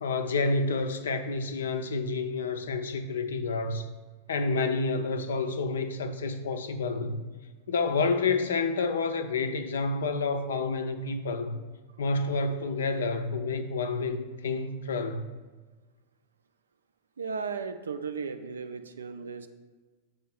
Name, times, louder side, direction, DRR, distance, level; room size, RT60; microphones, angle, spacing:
voice 1, 0.0-3.9 4.3-7.2 7.7-11.6 12.0-15.3, left 3 dB, 65° left, 9 dB, 0.5 m, -29 dB
voice 2, 17.2-19.5, right 5 dB, 70° right, 9 dB, 0.4 m, -35 dB
6.7 x 3.1 x 5.7 m, 1.3 s
figure-of-eight pair, 90°, 0 cm